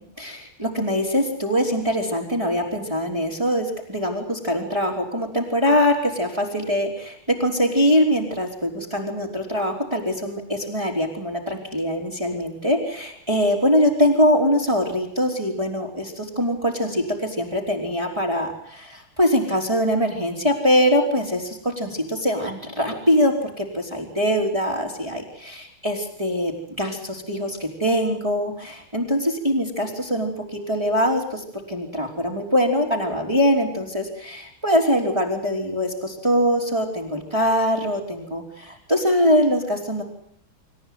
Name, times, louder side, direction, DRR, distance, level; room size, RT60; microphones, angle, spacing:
voice 1, 0.2-40.0, equal, 10° right, -1 dB, 3.7 m, -23 dB
27.5 x 14.5 x 9.3 m, 0.65 s
omnidirectional pair, 2.3 m